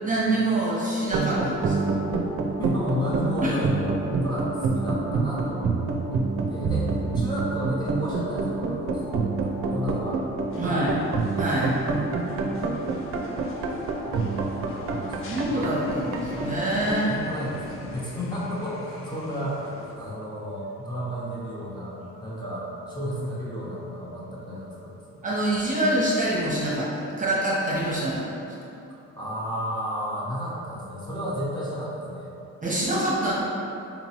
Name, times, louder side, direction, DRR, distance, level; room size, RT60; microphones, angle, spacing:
voice 1, 0.0-1.9 3.4-3.6 10.6-10.9 11.4-11.7 15.3-17.1 25.2-28.5 32.6-33.3, right 1 dB, 25° right, -7 dB, 0.8 m, -25 dB
sound 1, 1.0-17.9, right 3 dB, 50° right, 0.5 m, -27 dB
voice 2, 2.6-3.9 4.2-5.7 6.0-6.2 6.5-9.3 9.7-10.3 10.6-11.0 14.4-15.3 16.9-19.7 20.0-25.0 28.9-32.3, equal, 15° left, -8 dB, 0.9 m, -32 dB
sound 2, 10.5-20.0, left 2 dB, 45° left, 0.5 m, -42 dB
4.0 x 2.9 x 2.9 m, 2.8 s
cardioid pair, 90°, 30 cm